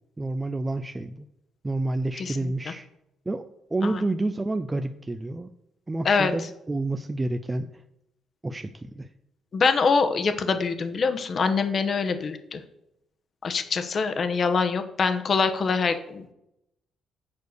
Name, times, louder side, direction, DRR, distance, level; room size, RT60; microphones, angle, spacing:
voice 1, 0.2-1.2 1.6-2.9 3.3-5.5 5.9-7.7 8.4-9.1, right 2 dB, 20° right, 8 dB, 0.4 m, -29 dB
voice 2, 2.2-2.5 3.8-4.0 6.0-6.3 9.5-12.6 13.4-16.3, left 5 dB, 45° left, 9 dB, 0.9 m, -24 dB
7.2 x 4.7 x 6.6 m, 0.84 s
cardioid pair, 90°, 0 cm